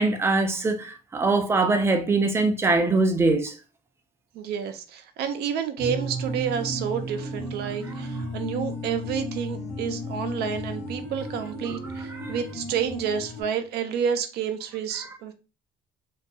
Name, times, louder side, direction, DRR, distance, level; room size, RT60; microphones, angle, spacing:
voice 1, 0.0-3.5 12.1-12.3, right 3 dB, 15° right, 0.4 m, -22 dB
voice 2, 4.3-15.3, right 7 dB, 75° right, 0.4 m, -29 dB
sound 1, 5.8-13.4, equal, 40° left, 1.1 m, -34 dB
2.3 x 2.2 x 2.6 m
cardioid pair, 110°, 17 cm